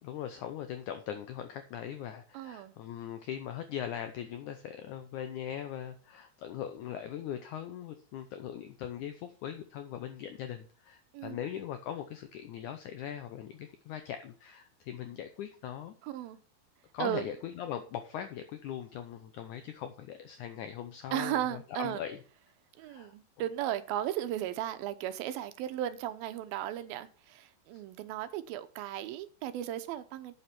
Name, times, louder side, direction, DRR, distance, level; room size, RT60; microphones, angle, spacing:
voice 1, 0.0-15.9 16.9-22.2 22.8-23.1 27.7-27.8, left 10 dB, 85° left, 1.7 m, -40 dB
voice 2, 2.3-2.8 11.1-11.4 16.0-16.4 17.0-17.3 21.1-22.0 22.8-30.3, right 12 dB, 75° right, 2.4 m, -35 dB
8.5 x 7.2 x 6.0 m
omnidirectional pair, 4.6 m